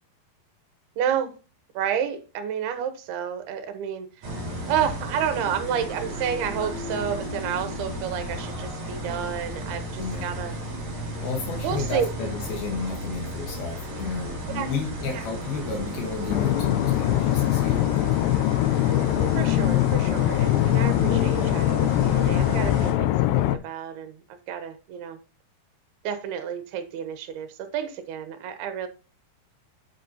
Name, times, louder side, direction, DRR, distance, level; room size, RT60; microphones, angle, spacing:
voice 1, 1.0-1.4 1.7-4.3 4.7-10.6 11.6-12.1 14.5-14.7 15.1-15.3 19.3-25.2 26.0-28.9, right 8 dB, 80° right, 3.1 m, -30 dB
sound 1, 4.2-22.9, right 1 dB, 45° right, 4.7 m, -34 dB
voice 2, 10.0-10.3 11.2-18.3, left 5 dB, 75° left, 3.2 m, -33 dB
sound 2, 16.3-23.6, left 15 dB, 90° left, 2.6 m, -22 dB
8.6 x 8.4 x 2.8 m
omnidirectional pair, 4.6 m